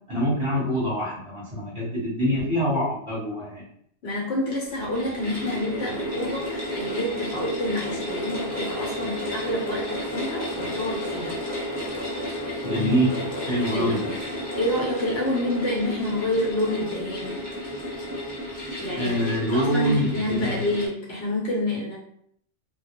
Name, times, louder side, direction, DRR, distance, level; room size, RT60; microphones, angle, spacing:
voice 1, 0.1-3.6 12.6-13.2 13.5-14.1 19.0-20.6, equal, 30° right, -8 dB, 0.9 m, -25 dB
voice 2, 4.0-11.4 13.7-13.9 14.6-17.4 18.8-22.0, left 1 dB, 60° left, -4 dB, 0.9 m, -28 dB
sound 1, 4.6-20.9, left 1 dB, 10° left, 0.9 m, -32 dB
2.2 x 2.0 x 2.9 m, 0.67 s
omnidirectional pair, 1.2 m